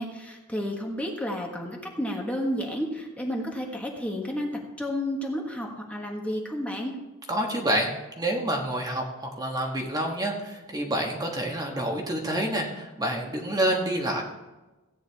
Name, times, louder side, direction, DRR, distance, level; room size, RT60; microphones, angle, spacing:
voice 1, 0.0-7.0, equal, 5° left, 0 dB, 1.4 m, -31 dB
voice 2, 7.3-7.9 8.2-14.2, right 1 dB, 20° right, 0 dB, 1.3 m, -28 dB
16.0 x 9.0 x 3.4 m, 1.1 s
head